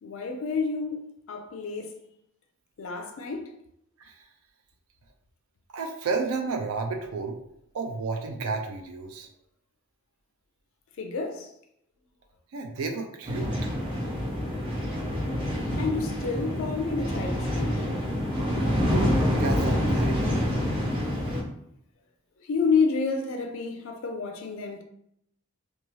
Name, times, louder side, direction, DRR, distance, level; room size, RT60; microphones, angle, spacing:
voice 1, 0.0-2.0 2.8-3.5 11.0-11.5 15.7-17.9 22.4-24.8, left 4 dB, 65° left, 0.4 m, -29 dB
voice 2, 5.7-7.4 7.7-9.3 12.5-13.6 18.8-20.4, right 4 dB, 75° right, 0.4 m, -32 dB
sound 1, 13.3-21.4, equal, 25° right, 0.6 m, -27 dB
3.1 x 2.2 x 2.7 m
head